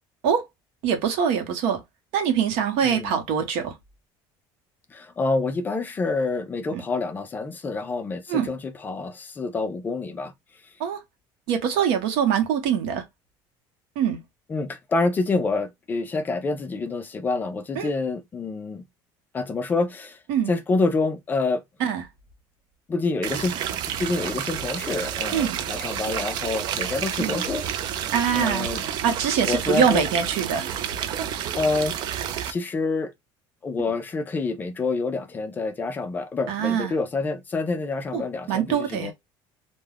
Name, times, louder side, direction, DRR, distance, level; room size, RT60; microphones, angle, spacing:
voice 1, 0.8-1.8 2.1-3.8 6.7-6.8 8.3-8.5 10.8-11.0 11.5-13.0 14.0-14.2 17.7-17.9 20.3-20.5 21.8-22.0 25.3-25.6 27.2-27.4 28.1-28.7 29.0-30.7 36.5-36.9 38.1-38.2 38.5-39.1, right 8 dB, 80° right, 0.8 m, -23 dB
voice 2, 2.8-3.1 4.9-10.3 14.5-18.8 19.3-20.2 20.5-21.6 22.9-28.0 28.3-28.8 29.5-30.0 31.5-31.9 32.4-33.1 33.6-39.1, left 3 dB, 20° left, 0.4 m, -27 dB
sound 1, 23.2-32.5, right 9 dB, 50° right, 0.4 m, -30 dB
2.3 x 2.2 x 3.2 m
cardioid pair, 155°, 10 cm